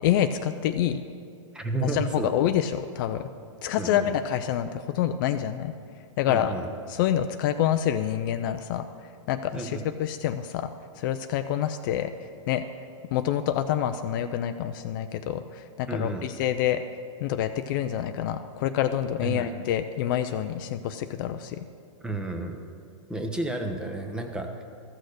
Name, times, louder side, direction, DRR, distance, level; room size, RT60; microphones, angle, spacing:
voice 1, 0.0-1.0 1.8-3.2 3.6-5.7 6.2-6.5 6.9-8.9 9.3-10.7 11.0-12.6 13.1-16.8 17.2-21.6, left 10 dB, 40° left, 9 dB, 0.4 m, -27 dB
voice 2, 1.5-2.3 3.8-4.1 6.3-6.7 9.5-9.8 15.9-16.2 19.2-19.5 22.0-22.6 23.1-24.6, right 2 dB, 5° right, 4 dB, 0.7 m, -31 dB
14.0 x 6.4 x 6.5 m, 2.4 s
hypercardioid pair, 150°, 17 cm